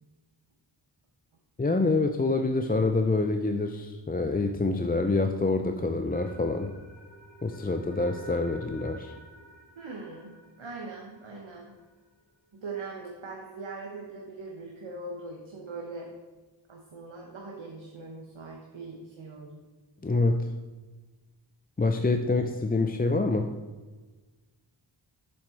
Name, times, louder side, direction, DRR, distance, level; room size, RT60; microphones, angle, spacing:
voice 1, 1.6-6.7 7.4-9.1 20.0-20.5 21.8-23.5, left 3 dB, 20° left, 6 dB, 0.5 m, -26 dB
sound 1, 6.1-12.2, equal, 65° left, 2.7 m, -52 dB
voice 2, 9.8-11.7 12.5-16.1 16.7-19.6, right 3 dB, 80° right, -1 dB, 1.3 m, -41 dB
7.8 x 7.6 x 4.5 m, 1.3 s
wide cardioid pair, 70°, 47 cm